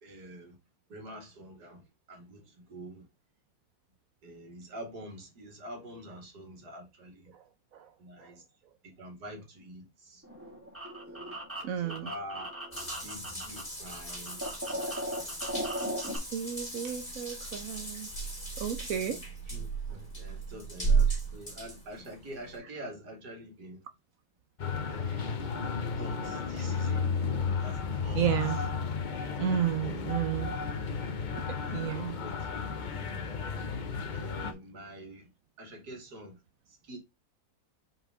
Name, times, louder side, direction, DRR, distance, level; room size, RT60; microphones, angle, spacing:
voice 1, 0.0-0.6 0.9-3.1 4.2-7.3 8.0-8.4 8.8-10.2 11.1-12.5 13.0-14.4 14.7-15.4 16.0-16.2 18.9-23.8 25.0-25.4 26.0-27.1 27.6-28.3 29.6-30.0 30.6-30.7 31.5-32.6 33.0-33.4 34.1-35.3 35.6-36.4 36.7-37.0, right 1 dB, 85° right, 2.7 m, -46 dB
sound 1, 10.2-13.6 13.9-16.2, equal, 10° right, 2.3 m, -37 dB
voice 2, 11.6-12.1 16.3-18.1 18.6-19.2 21.1-21.2 28.1-28.6 29.4-30.5 31.7-32.1, right 9 dB, 65° right, 1.0 m, -32 dB
Water tap faucet / Bathtub (filling or washing) / Drip, 12.7-22.6, right 4 dB, 25° left, 3.2 m, -34 dB
sound 2, 24.6-34.5, left 5 dB, 45° left, 0.6 m, -33 dB
5.5 x 4.8 x 3.6 m
omnidirectional pair, 1.7 m